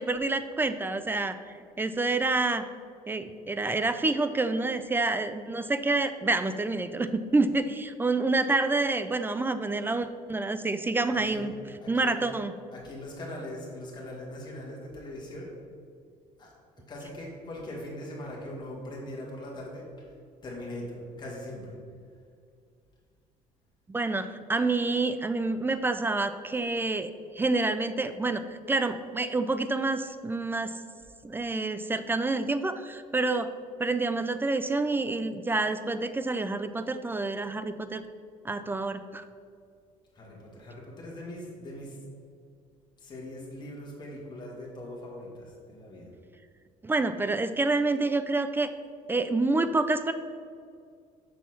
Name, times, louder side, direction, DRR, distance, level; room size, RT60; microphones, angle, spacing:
voice 1, 0.0-1.3 1.8-2.6 3.1-11.5 11.9-12.5 23.9-30.7 31.2-33.5 33.8-38.0 38.4-39.2 46.8-48.7 49.1-50.1, right 3 dB, 15° right, 11 dB, 0.3 m, -28 dB
voice 2, 11.1-11.5 11.8-12.3 12.7-15.5 16.4-16.5 16.9-19.9 20.4-21.8 40.1-42.0 43.0-46.1, left 1 dB, 30° left, -3 dB, 1.8 m, -41 dB
6.3 x 4.4 x 5.7 m, 2.2 s
cardioid pair, 110°, 14 cm